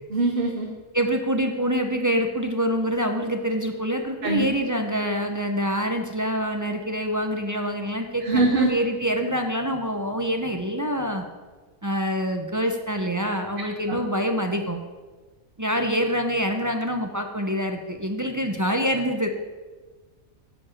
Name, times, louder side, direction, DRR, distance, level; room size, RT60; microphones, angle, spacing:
voice 1, 0.1-0.7 4.2-4.5 8.2-8.7 13.9-14.0, right 3 dB, 45° right, 1 dB, 1.1 m, -22 dB
voice 2, 0.9-11.2 11.8-14.8 15.6-19.3, equal, 20° right, 4 dB, 0.5 m, -26 dB
10.0 x 5.1 x 7.2 m, 1.3 s
omnidirectional pair, 1.4 m